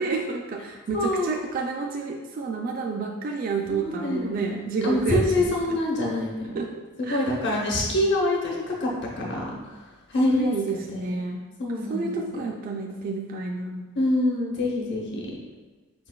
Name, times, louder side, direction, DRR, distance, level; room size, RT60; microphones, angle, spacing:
voice 1, 0.0-5.5 6.6-6.7 7.1-7.2 10.4-11.5 11.9-13.8, right 4 dB, 45° right, 1 dB, 0.3 m, -30 dB
voice 2, 0.9-1.4 3.7-6.5 7.0-8.9 9.2-9.8 10.1-10.5 10.9-11.2 11.6-12.5 13.9-15.3, left 1 dB, 60° left, -3 dB, 0.9 m, -26 dB
4.9 x 3.9 x 2.3 m, 1.3 s
head